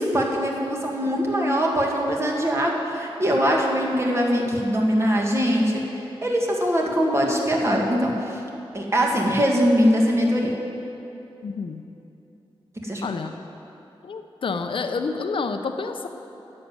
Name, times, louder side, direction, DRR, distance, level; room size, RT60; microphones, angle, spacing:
voice 1, 0.0-5.8 6.2-8.4 8.7-10.5 12.8-13.1, equal, 30° right, -1 dB, 2.0 m, -22 dB
voice 2, 11.4-11.8 13.0-13.3 14.0-16.1, left 4 dB, 65° left, 7 dB, 0.8 m, -28 dB
11.0 x 7.7 x 9.5 m, 3.0 s
wide cardioid pair, 100°, 10 cm